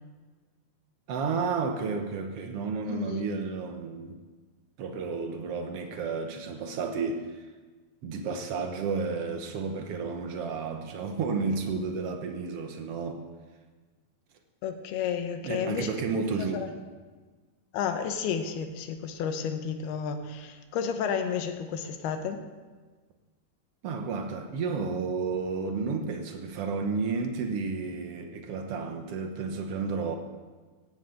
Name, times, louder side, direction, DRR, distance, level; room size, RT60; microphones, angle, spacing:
voice 1, 1.1-4.2 4.8-7.5 8.0-13.2 15.4-16.7 23.8-30.2, right 4 dB, 85° right, 4 dB, 1.3 m, -32 dB
voice 2, 2.9-3.3 14.6-16.0 16.5-16.7 17.7-22.4, left 7 dB, 90° left, 7 dB, 3.0 m, -31 dB
17.5 x 16.0 x 3.9 m, 1.3 s
omnidirectional pair, 4.4 m